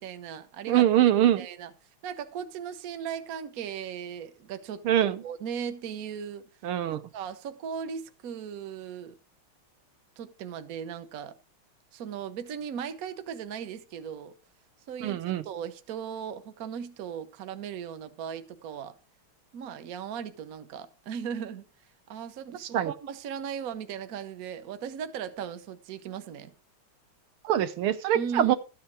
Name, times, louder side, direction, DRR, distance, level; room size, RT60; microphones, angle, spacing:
voice 1, 0.0-0.9 1.4-1.7 2.0-6.5 6.9-9.2 10.2-11.3 11.9-14.3 14.9-18.9 19.5-21.7 22.1-26.5 28.1-28.5, right 7 dB, 50° right, 1.2 m, -37 dB
voice 2, 0.7-1.5 4.9-5.2 6.6-7.0 15.0-15.4 22.7-22.9 27.4-28.6, right 11 dB, 80° right, 1.7 m, -23 dB
13.0 x 8.7 x 4.6 m
omnidirectional pair, 2.4 m